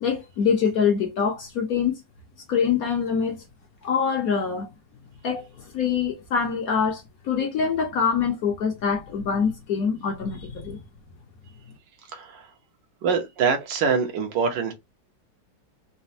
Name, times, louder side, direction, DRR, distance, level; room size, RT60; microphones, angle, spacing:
voice 1, 0.0-2.0 2.5-3.4 3.8-4.7 5.2-5.5 5.7-10.8, left 6 dB, 60° left, 1.1 m, -24 dB
voice 2, 12.1-12.5 13.0-14.7, right 5 dB, 70° right, 1.5 m, -24 dB
4.1 x 2.2 x 2.6 m
omnidirectional pair, 2.1 m